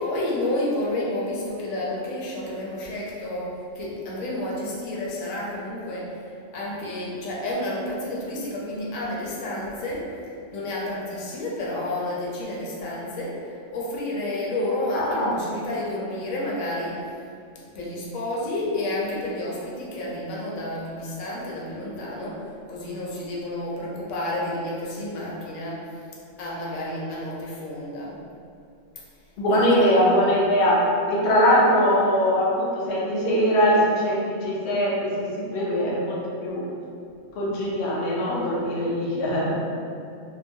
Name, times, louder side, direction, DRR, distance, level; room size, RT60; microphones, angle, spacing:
voice 1, 0.0-6.1 6.5-10.1 10.5-17.0 17.7-22.4 22.7-26.0 26.4-28.2 29.5-29.9, left 1 dB, 90° left, -5 dB, 1.0 m, -30 dB
voice 2, 14.9-15.4 29.4-30.8 31.1-36.6 37.3-39.5, equal, 60° left, -6 dB, 0.7 m, -22 dB
2.9 x 2.0 x 2.6 m, 2.5 s
omnidirectional pair, 1.3 m